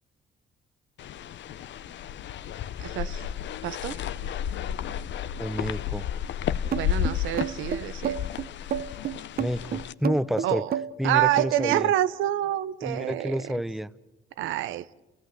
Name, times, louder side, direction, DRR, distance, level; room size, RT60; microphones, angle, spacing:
sound 1, 1.0-9.9, left 10 dB, 65° left, 0.7 m, -32 dB
voice 1, 2.8-3.2 3.6-4.0 6.7-8.1 10.4-10.7 11.0-13.4 14.4-14.9, right 13 dB, 90° right, 16 dB, 0.7 m, -27 dB
voice 2, 5.4-6.1 9.4-10.6 11.0-11.9 12.8-13.9, equal, ahead, 16 dB, 0.7 m, -29 dB
sound 2, 6.7-11.9, right 9 dB, 50° right, 0.8 m, -30 dB
29.5 x 16.0 x 7.8 m, 1.1 s
cardioid pair, 90°, 20 cm